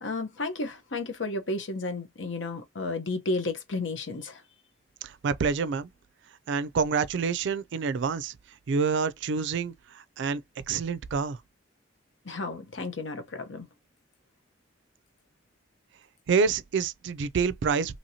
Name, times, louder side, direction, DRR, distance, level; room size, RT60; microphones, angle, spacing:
voice 1, 0.0-4.4 12.2-13.7, left 2 dB, 75° left, 0.9 m, -32 dB
voice 2, 5.0-5.9 6.5-8.3 8.7-10.4 10.7-11.4 16.3-18.0, right 5 dB, 65° right, 0.4 m, -27 dB
2.9 x 2.8 x 2.7 m
head